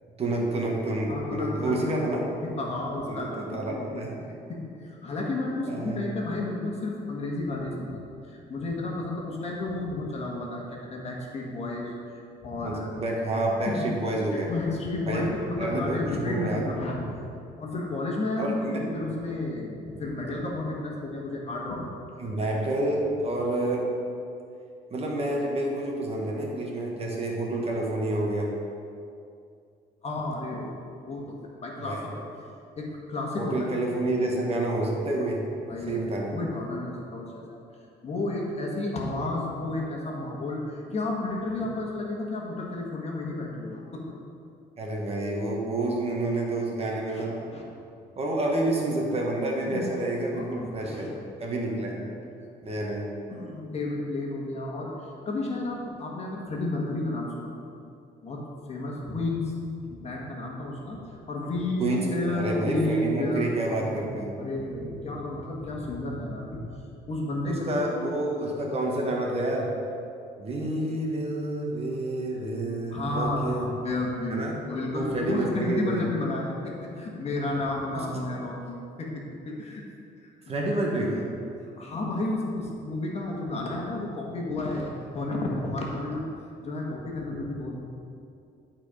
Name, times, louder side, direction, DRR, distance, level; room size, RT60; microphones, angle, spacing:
voice 1, 0.2-2.2 3.1-4.3 5.7-6.0 12.6-14.5 15.1-15.3 15.6-16.6 18.4-18.8 22.2-23.8 24.9-28.5 31.8-32.1 33.4-35.4 35.9-36.4 44.8-47.4 48.2-51.1 51.4-52.0 52.6-53.1 61.8-64.3 67.5-69.7 70.4-73.7 74.3-74.6 74.9-76.0 77.9-78.0 80.5-81.2, right 1 dB, 35° right, -1 dB, 1.5 m, -29 dB
voice 2, 1.1-2.0 2.4-4.1 4.5-13.1 13.7-13.9 14.5-17.2 17.6-21.9 22.4-22.5 30.0-31.4 31.6-32.0 32.7-33.5 34.0-34.1 35.7-37.6 38.0-44.0 47.1-47.6 49.6-50.0 50.3-51.2 51.5-51.6 52.0-52.1 53.3-54.9 55.2-57.6 58.2-58.4 58.7-59.6 59.9-61.0 61.3-63.5 63.8-66.6 67.1-67.8 72.9-79.9 80.2-80.3 81.2-81.3 81.8-86.2 86.6-87.8, left 2 dB, 40° left, -2 dB, 1.6 m, -32 dB
11.0 x 4.5 x 5.1 m, 2.5 s
cardioid pair, 110°, 17 cm